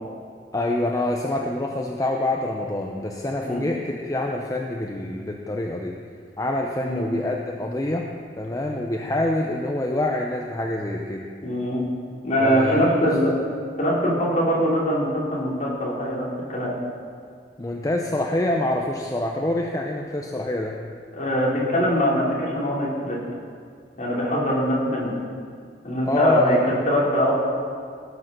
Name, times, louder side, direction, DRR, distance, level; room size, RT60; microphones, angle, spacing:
voice 1, 0.5-6.0 6.4-11.3 12.4-13.1 17.6-20.8 26.1-26.6, left 1 dB, 20° left, 0 dB, 0.6 m, -26 dB
voice 2, 11.4-11.8 12.2-13.3 13.8-16.7 21.1-23.2 24.0-25.1 25.8-27.3, equal, 45° left, -4 dB, 2.8 m, -22 dB
16.0 x 6.3 x 6.7 m, 2.1 s
head